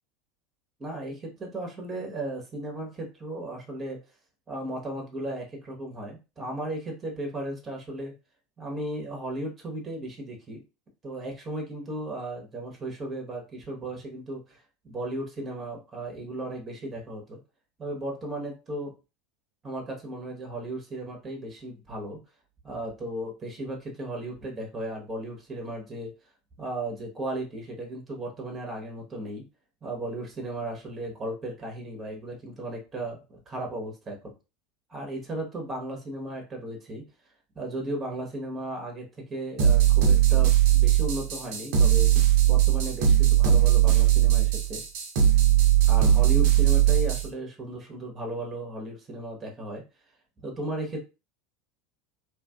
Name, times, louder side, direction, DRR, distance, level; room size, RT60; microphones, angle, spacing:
voice 1, 0.8-4.0 4.5-8.1 8.6-10.6 11.0-17.4 17.8-18.9 19.6-22.2 22.6-26.1 26.6-29.4 29.8-34.3 34.9-37.0 37.5-42.1 42.4-44.8 45.9-49.8 50.4-51.0, right 1 dB, 25° right, 1 dB, 1.1 m, -35 dB
sound 1, 39.6-47.3, right 11 dB, 60° right, 0.7 m, -20 dB
2.9 x 2.5 x 2.3 m, 0.29 s
hypercardioid pair, 80°, 0 cm